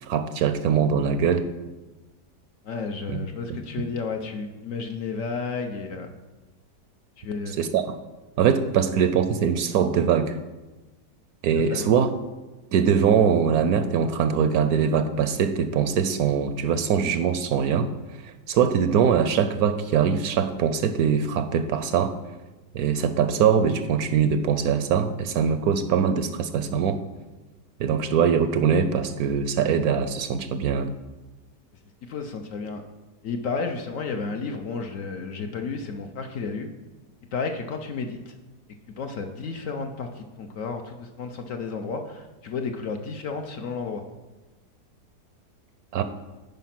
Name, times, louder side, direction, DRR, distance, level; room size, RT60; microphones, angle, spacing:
voice 1, 0.0-1.4 3.1-3.2 3.5-3.6 7.6-8.0 8.4-10.4 11.4-12.1 12.7-17.9 18.2-22.2 22.7-27.0 27.8-30.9 45.9-46.0, right 7 dB, 70° right, 10 dB, 0.9 m, -22 dB
voice 2, 2.6-6.2 7.2-7.6 11.7-11.8 32.0-32.8 33.2-36.7 37.3-38.3 39.0-44.0, left 4 dB, 60° left, 5 dB, 0.9 m, -32 dB
9.2 x 5.0 x 5.8 m, 1.1 s
omnidirectional pair, 1.8 m